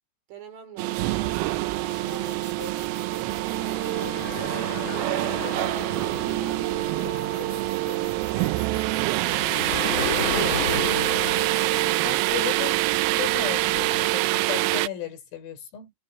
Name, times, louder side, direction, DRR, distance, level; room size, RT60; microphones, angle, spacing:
voice 1, 0.3-2.8 3.4-7.6, right 8 dB, 70° right, 6.0 m, -46 dB
sound 1, 0.8-14.9, right 20 dB, 90° right, 3.5 m, -25 dB
sound 2, 1.0-14.1, left 4 dB, 25° left, 2.5 m, -35 dB
sound 3, 1.7-13.0, left 5 dB, 65° left, 6.7 m, -46 dB
voice 2, 12.0-12.8 13.1-15.9, left 10 dB, 85° left, 8.0 m, -34 dB
omnidirectional pair, 5.8 m